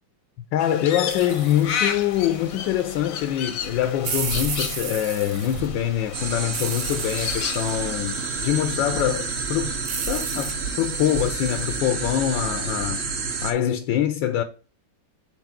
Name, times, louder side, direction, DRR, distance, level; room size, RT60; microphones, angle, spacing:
voice 1, 0.5-9.7 10.1-13.1 13.4-14.4, left 11 dB, 80° left, 1.3 m, -24 dB
Crow, 0.6-7.9, left 7 dB, 60° left, 1.0 m, -33 dB
sound 1, 1.1-11.8, right 5 dB, 80° right, 1.8 m, -35 dB
sound 2, 6.1-13.5, right 4 dB, 45° right, 1.0 m, -29 dB
4.7 x 4.2 x 5.8 m
omnidirectional pair, 2.1 m